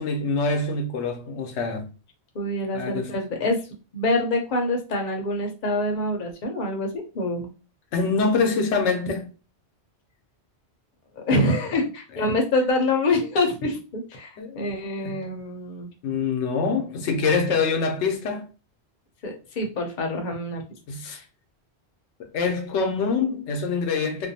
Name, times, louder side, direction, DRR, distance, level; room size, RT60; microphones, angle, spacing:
voice 1, 0.0-1.9 2.7-3.1 7.9-9.3 14.4-14.7 15.0-15.2 16.0-18.5 20.9-21.2 22.2-24.3, left 4 dB, 85° left, 0.9 m, -25 dB
voice 2, 2.3-3.6 3.9-7.5 11.2-15.9 19.2-20.6, left 2 dB, 50° left, 0.7 m, -25 dB
2.5 x 2.2 x 2.7 m
omnidirectional pair, 1.1 m